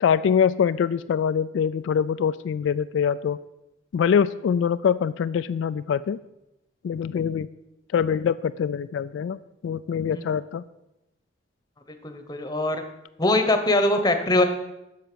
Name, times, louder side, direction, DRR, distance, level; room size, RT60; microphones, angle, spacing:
voice 1, 0.0-3.4 3.9-6.2 6.8-7.5 7.9-10.6, left 7 dB, 80° left, 13 dB, 0.3 m, -24 dB
voice 2, 11.9-12.8 13.2-14.4, left 1 dB, 20° left, 7 dB, 0.9 m, -22 dB
7.6 x 6.5 x 6.8 m, 0.91 s
head